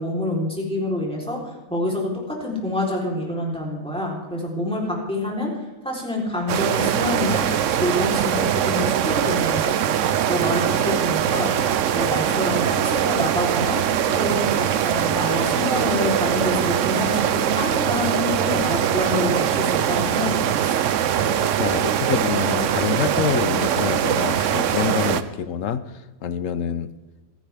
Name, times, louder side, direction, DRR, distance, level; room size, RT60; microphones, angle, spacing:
voice 1, 0.0-5.5 5.8-9.9 10.3-11.5 11.9-14.5 14.8-20.8, left 1 dB, 5° left, -3 dB, 3.5 m, -27 dB
sound 1, 6.5-25.2, right 9 dB, 65° right, 1.0 m, -22 dB
voice 2, 21.3-25.9 26.2-26.9, left 8 dB, 70° left, 13 dB, 1.1 m, -26 dB
27.5 x 10.0 x 3.4 m, 1.1 s
omnidirectional pair, 1.5 m